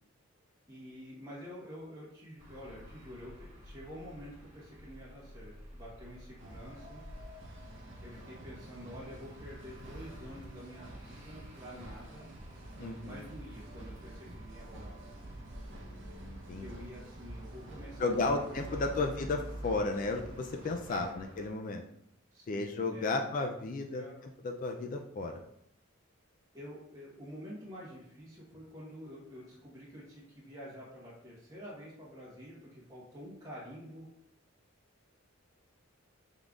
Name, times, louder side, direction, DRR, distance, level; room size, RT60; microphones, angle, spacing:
voice 1, 0.7-7.0 8.0-12.2 12.8-15.0 16.6-18.8 19.1-19.2 20.9-21.1 22.3-23.5 23.8-24.3 26.5-34.1, equal, 15° right, -7 dB, 1.0 m, -48 dB
sound 1, 2.4-21.5, equal, 35° right, 1.6 m, -50 dB
sound 2, 6.4-21.1, right 1 dB, 60° right, 0.8 m, -50 dB
voice 2, 12.8-13.3 15.7-16.7 18.0-21.8 22.5-24.0 24.4-25.4, left 3 dB, 40° left, 5 dB, 0.3 m, -34 dB
5.3 x 3.7 x 2.4 m, 0.74 s
head